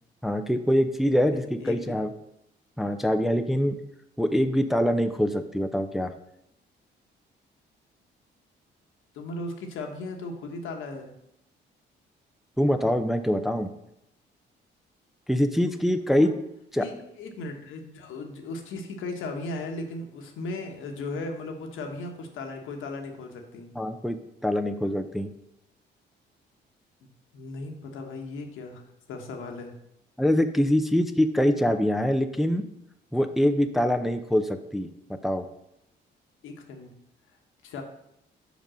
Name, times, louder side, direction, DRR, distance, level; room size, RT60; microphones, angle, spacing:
voice 1, 0.2-2.1 2.8-3.8 4.2-6.1 12.6-13.7 15.3-16.3 16.7-16.9 23.8-25.3 30.2-32.7 33.1-34.9 35.2-35.4, equal, ahead, 8 dB, 0.5 m, -24 dB
voice 2, 1.3-1.9 9.1-11.1 16.2-16.3 16.7-23.7 27.0-27.1 27.3-28.8 29.1-29.7 36.4-36.9 37.6-37.8, left 2 dB, 80° left, 3 dB, 1.2 m, -37 dB
5.3 x 5.1 x 6.2 m, 0.82 s
cardioid pair, 90°, 20 cm